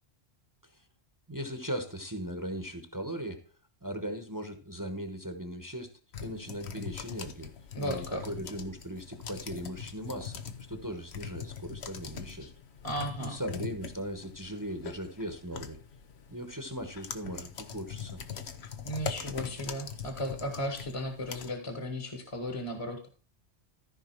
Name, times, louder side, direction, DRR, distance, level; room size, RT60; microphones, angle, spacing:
voice 1, 1.3-3.4 3.8-7.5 7.8-10.4 10.7-12.5 13.2-15.8 16.3-18.2, equal, 20° right, 7 dB, 1.1 m, -38 dB
sound 1, 6.1-21.5, left 7 dB, 75° left, 1.2 m, -42 dB
voice 2, 7.7-8.2 12.8-13.4 18.8-23.1, equal, 30° left, 5 dB, 1.4 m, -35 dB
14.0 x 5.1 x 4.5 m, 0.37 s
omnidirectional pair, 1.1 m